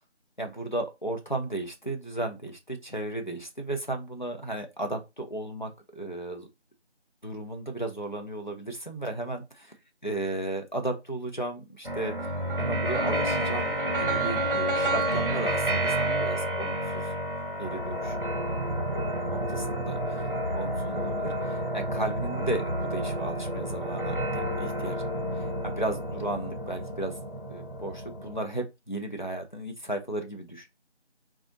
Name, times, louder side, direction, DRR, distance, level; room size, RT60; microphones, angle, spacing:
voice 1, 0.4-6.5 7.2-9.7 10.0-12.3 12.6-17.1 17.6-18.2 19.3-20.2 20.6-27.1 27.5-30.7, right 1 dB, 45° left, 0.7 m, -35 dB
sound 1, 11.8-28.4, right 1 dB, 50° right, 0.9 m, -30 dB
2.6 x 2.4 x 3.9 m
figure-of-eight pair, 180°, 34 cm